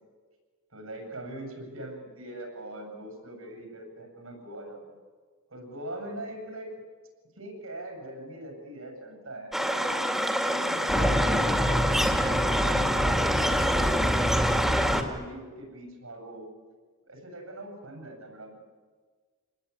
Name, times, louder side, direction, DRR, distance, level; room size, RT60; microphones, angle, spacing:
voice 1, 0.7-5.0 5.5-6.7 7.3-9.9 10.4-14.0 14.3-16.5 17.1-18.6, right 1 dB, 80° right, 3 dB, 7.7 m, -42 dB
sound 1, 9.5-15.0, equal, ahead, 2.3 m, -24 dB
28.0 x 20.5 x 9.9 m, 1.5 s
head